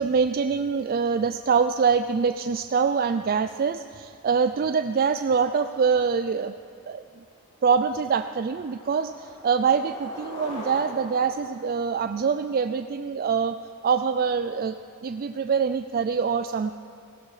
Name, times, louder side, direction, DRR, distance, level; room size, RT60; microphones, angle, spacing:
voice 1, 0.0-6.5 6.9-7.0 7.6-13.6 13.8-14.8 15.0-16.8, right 6 dB, 40° right, 10 dB, 0.4 m, -24 dB
Skateboard, 6.8-6.9 7.3-7.6 8.0-12.6, left 1 dB, 30° left, 4.9 m, -42 dB
17.0 x 17.0 x 4.9 m, 2.4 s
head